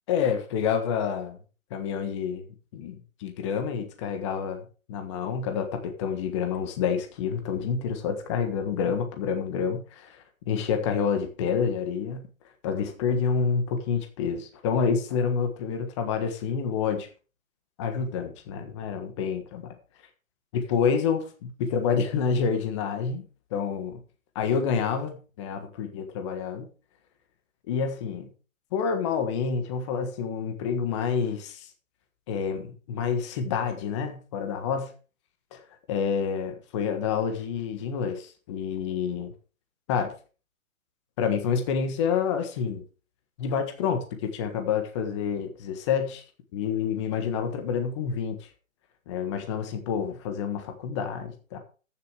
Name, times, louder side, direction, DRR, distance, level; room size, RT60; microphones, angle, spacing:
voice 1, 0.1-1.4 1.7-2.4 2.7-4.6 4.9-12.3 12.6-17.1 17.8-19.7 20.5-23.2 23.5-24.0 24.3-26.7 27.7-28.3 28.7-31.7 32.3-34.9 35.5-35.6 35.9-39.3 39.9-40.1 41.2-42.8 43.4-46.2 46.5-48.4 49.1-51.6, left 6 dB, 20° left, 6 dB, 1.4 m, -28 dB
14.5 x 6.6 x 4.8 m, 0.36 s
hypercardioid pair, 160°, 41 cm